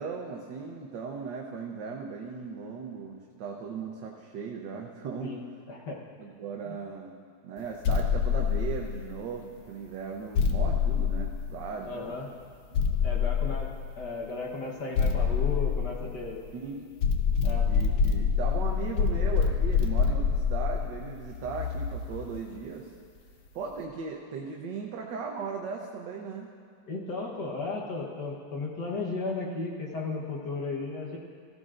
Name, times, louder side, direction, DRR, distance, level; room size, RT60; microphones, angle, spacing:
voice 1, 0.0-5.4 6.2-7.1 7.4-12.2 16.5-16.9 17.7-22.9 23.5-26.5, right 5 dB, 65° right, 0 dB, 1.4 m, -37 dB
voice 2, 5.7-6.0 6.6-6.8 11.8-12.3 13.0-13.7 14.0-16.4 17.4-17.7 26.9-31.2, left 3 dB, 60° left, -2 dB, 1.7 m, -35 dB
sound 1, 7.8-9.3 10.4-12.0 12.7-14.1 15.0-16.6 17.0-22.3, left 6 dB, 75° left, 1.6 m, -26 dB
16.0 x 14.5 x 2.5 m, 2.2 s
omnidirectional pair, 2.2 m